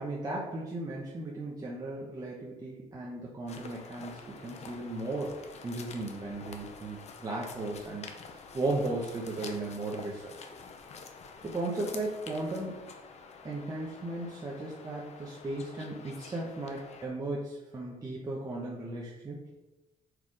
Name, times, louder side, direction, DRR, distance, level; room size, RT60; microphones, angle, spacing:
voice 1, 0.0-8.1 8.5-10.3 11.4-12.7 13.4-19.5, right 2 dB, 25° right, -4 dB, 1.1 m, -36 dB
sound 1, 3.5-17.1, left 5 dB, 45° left, 0.8 m, -48 dB
5.7 x 4.9 x 4.9 m, 1.1 s
cardioid pair, 130°, 15 cm